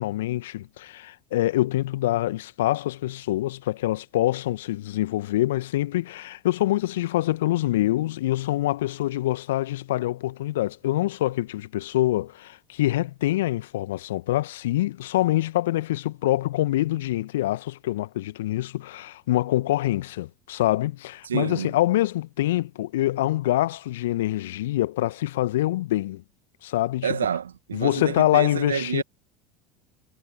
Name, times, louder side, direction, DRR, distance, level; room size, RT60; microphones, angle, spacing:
voice 1, 0.0-26.2 26.6-27.2 27.7-29.0, left 15 dB, 65° left, 1.6 m, -25 dB
voice 2, 21.3-21.7 27.0-29.0, right 8 dB, 75° right, 1.8 m, -28 dB
figure-of-eight pair, 70°, 0 cm